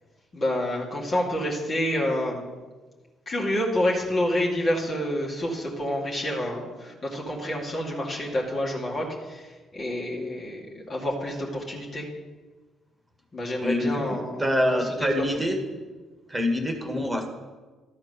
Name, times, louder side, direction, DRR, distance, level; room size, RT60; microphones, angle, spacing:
voice 1, 0.3-2.4 3.3-12.0 13.3-15.2, left 1 dB, 35° left, -3 dB, 2.4 m, -28 dB
voice 2, 13.6-15.6 16.3-17.3, left 1 dB, 15° right, 4 dB, 1.8 m, -26 dB
12.5 x 4.5 x 6.9 m, 1.3 s
figure-of-eight pair, 45°, 0 cm